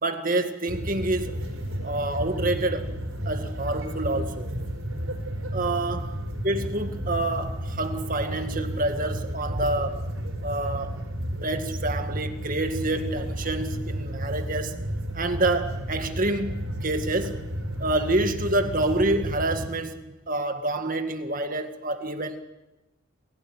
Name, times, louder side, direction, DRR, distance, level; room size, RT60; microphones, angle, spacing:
voice 1, 0.0-1.3 1.8-2.9 3.3-4.5 5.5-6.1 6.4-10.1 10.4-11.0 11.4-14.7 15.1-17.4 17.8-22.4, right 2 dB, 40° right, 7 dB, 2.0 m, -27 dB
sound 1, 0.7-19.7, equal, 70° right, 5.1 m, -32 dB
28.5 x 16.5 x 9.1 m, 1.0 s
head